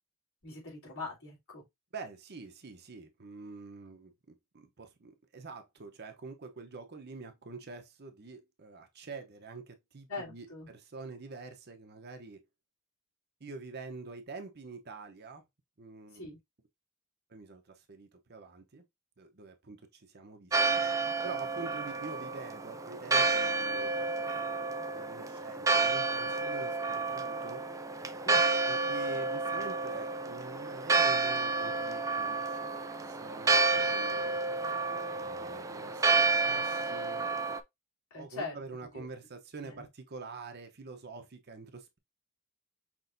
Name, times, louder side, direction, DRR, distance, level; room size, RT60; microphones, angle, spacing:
voice 1, 0.4-1.6 10.1-10.7 16.1-16.4 28.2-28.6 38.1-38.5 38.9-39.0 39.6-39.9, left 3 dB, 70° left, 3.6 m, -41 dB
voice 2, 1.9-12.4 13.4-15.4 15.8-16.2 17.3-18.8 19.2-20.8 21.2-27.6 28.7-34.4 35.1-37.3 38.2-42.0, right 4 dB, 50° right, 0.8 m, -46 dB
Church bell, 20.5-37.6, right 3 dB, 15° right, 0.3 m, -30 dB
5.9 x 3.1 x 2.6 m
head